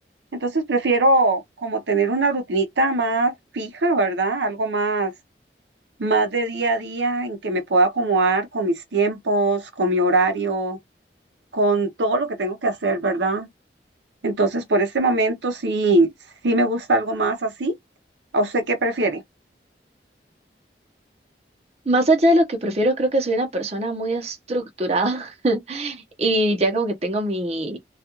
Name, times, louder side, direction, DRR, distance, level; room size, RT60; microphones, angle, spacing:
voice 1, 0.4-5.1 6.0-10.8 11.5-13.5 14.2-16.1 16.4-17.7 18.3-19.2, right 2 dB, 80° right, 0.6 m, -21 dB
voice 2, 21.9-27.8, right 1 dB, 35° right, 0.7 m, -22 dB
2.3 x 2.3 x 2.9 m
head